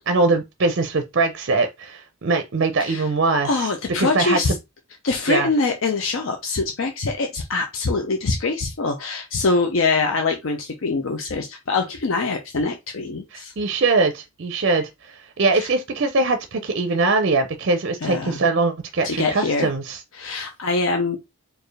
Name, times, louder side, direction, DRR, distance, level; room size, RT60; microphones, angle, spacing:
voice 1, 0.1-3.7 4.0-4.6 5.3-5.5 13.3-20.0, right 3 dB, 50° right, 0.5 m, -22 dB
voice 2, 3.4-4.5 5.0-13.5 15.5-15.7 18.0-18.4 19.0-19.7 20.1-21.2, left 3 dB, 65° left, 0.6 m, -24 dB
4.4 x 2.6 x 3.2 m
head